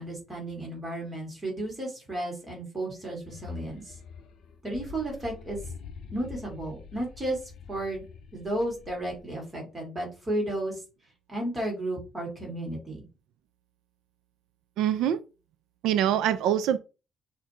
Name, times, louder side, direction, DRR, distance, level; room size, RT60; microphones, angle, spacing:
voice 1, 0.0-4.0 4.6-5.6 6.1-7.4 7.7-8.0 8.3-10.8 11.3-13.1, right 1 dB, 15° right, 1.8 m, -33 dB
sound 1, 3.1-9.4, left 5 dB, 50° left, 0.6 m, -45 dB
voice 2, 14.8-15.2 15.8-16.8, right 10 dB, 85° right, 0.3 m, -24 dB
6.2 x 2.6 x 2.8 m
cardioid pair, 180°, 0 cm